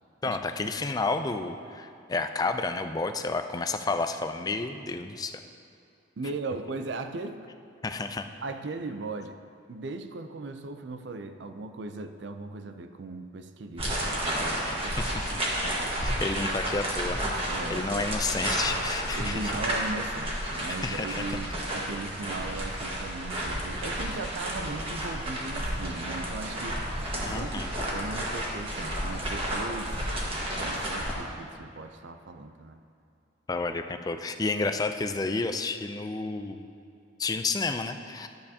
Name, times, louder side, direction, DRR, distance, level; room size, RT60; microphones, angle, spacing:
voice 1, 0.2-5.4 7.8-8.2 15.0-15.3 16.0-17.3 17.7-19.5 20.7-21.4 27.2-27.7 33.5-36.6 37.2-38.3, left 3 dB, 20° left, 7 dB, 0.3 m, -31 dB
voice 2, 6.2-7.4 8.4-9.4 9.7-15.0 17.5-18.2 19.1-26.9 27.1-30.1 30.6-32.8, right 3 dB, 65° right, 8 dB, 0.5 m, -38 dB
sound 1, 13.8-31.1, right 1 dB, 30° right, 1.4 m, -31 dB
12.0 x 8.7 x 2.8 m, 2.6 s
head